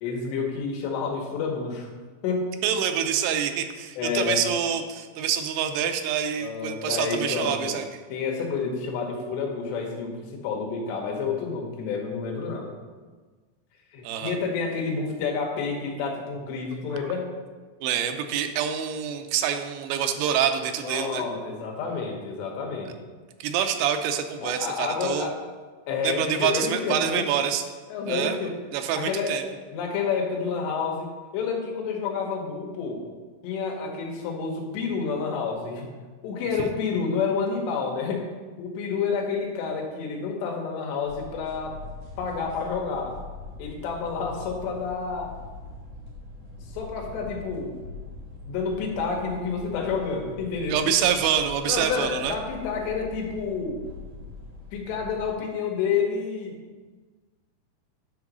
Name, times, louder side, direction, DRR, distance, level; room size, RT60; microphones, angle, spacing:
voice 1, 0.0-1.9 2.2-2.4 4.0-4.4 6.4-7.8 8.1-12.7 13.9-17.3 20.8-22.9 24.4-25.3 25.9-27.3 27.9-28.5 28.9-29.4 29.7-33.0 33.4-36.0 36.2-38.2 38.6-41.8 42.2-43.1 43.6-45.3 46.7-47.8 48.5-50.9 51.7-53.8 54.7-56.6, left 5 dB, 85° left, 1 dB, 3.4 m, -29 dB
voice 2, 2.6-7.9 14.0-14.4 17.8-21.2 23.4-25.3 26.0-27.6 28.1-28.4 28.7-29.4 36.6-36.7 50.7-52.3, right 8 dB, 85° right, 7 dB, 2.8 m, -26 dB
sound 1, 41.1-55.3, left 2 dB, 45° right, 2.6 m, -42 dB
9.9 x 3.9 x 6.0 m, 1.4 s
omnidirectional pair, 4.8 m